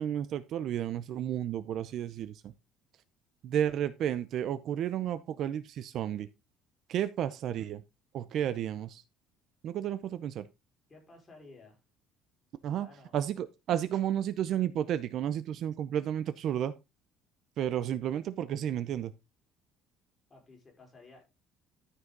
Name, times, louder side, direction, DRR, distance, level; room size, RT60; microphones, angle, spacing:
voice 1, 0.0-2.5 3.4-6.3 6.9-7.8 8.1-9.0 9.6-10.5 12.6-12.9 13.1-16.7 17.6-19.1, right 10 dB, 45° right, 0.6 m, -32 dB
voice 2, 10.9-11.8 12.7-13.1 20.3-21.2, left 3 dB, 20° left, 4.3 m, -54 dB
13.0 x 5.6 x 3.9 m
cardioid pair, 165°, 0 cm